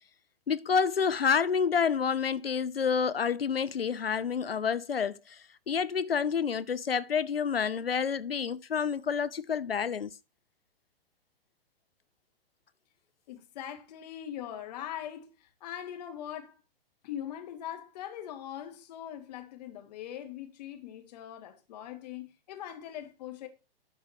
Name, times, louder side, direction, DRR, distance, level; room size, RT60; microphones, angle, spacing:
voice 1, 0.5-5.4 5.7-10.1, left 6 dB, 75° left, 0.7 m, -28 dB
voice 2, 13.3-16.5 17.0-23.5, left 10 dB, 45° left, 1.9 m, -41 dB
12.0 x 4.7 x 4.9 m
figure-of-eight pair, 110°, 30 cm